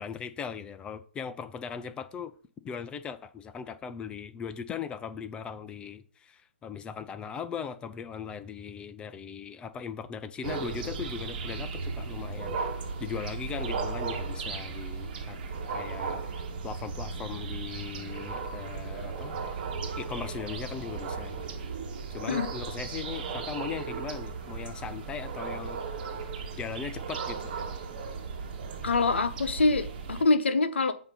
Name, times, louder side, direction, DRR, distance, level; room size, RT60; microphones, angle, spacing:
voice 1, 0.0-2.3 2.6-12.6 13.0-15.4 15.7-19.4 20.0-21.5 22.1-25.8 26.6-27.5, left 7 dB, 15° left, 0.4 m, -39 dB
sound 1, 10.4-30.2, right 5 dB, 45° right, 1.1 m, -36 dB
voice 2, 28.8-30.9, left 3 dB, 75° left, 0.8 m, -25 dB
7.9 x 2.8 x 5.3 m
figure-of-eight pair, 125°, 6 cm